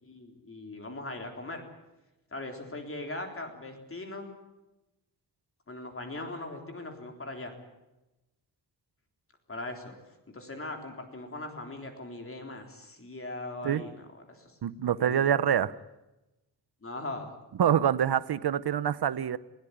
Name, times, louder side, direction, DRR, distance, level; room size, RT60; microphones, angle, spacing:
voice 1, 0.0-1.6 2.3-4.3 5.7-7.5 9.5-9.9 10.3-14.6 15.0-15.3 16.8-17.3, left 2 dB, 30° left, 4 dB, 3.7 m, -40 dB
voice 2, 14.6-15.7 17.6-19.4, right 9 dB, 70° right, 17 dB, 0.8 m, -25 dB
20.0 x 18.0 x 9.9 m, 0.99 s
wide cardioid pair, 170°, 41 cm